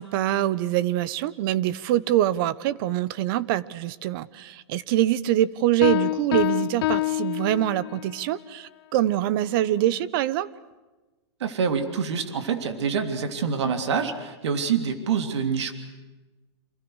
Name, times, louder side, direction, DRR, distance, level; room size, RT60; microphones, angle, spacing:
voice 1, 0.0-10.5, right 13 dB, 50° right, 18 dB, 1.3 m, -24 dB
Piano, 5.8-8.2, left 17 dB, 60° left, 0.8 m, -26 dB
voice 2, 11.4-15.7, right 6 dB, 75° right, 7 dB, 3.2 m, -26 dB
29.0 x 27.0 x 6.5 m, 1.2 s
hypercardioid pair, 130°, 14 cm